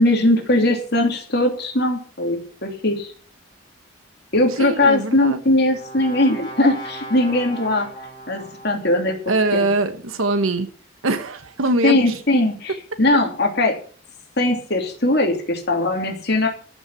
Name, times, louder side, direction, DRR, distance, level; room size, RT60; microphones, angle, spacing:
voice 1, 0.0-3.1 4.3-7.9 8.3-9.2 9.5-9.7 11.8-12.7 13.0-13.8 14.4-16.5, left 1 dB, 50° left, 2.8 m, -20 dB
voice 2, 4.5-5.4 9.3-10.7 11.0-12.2, right 2 dB, 85° right, 1.3 m, -22 dB
Brass instrument, 5.0-9.1, right 1 dB, 25° left, 3.7 m, -38 dB
14.0 x 6.2 x 8.3 m
head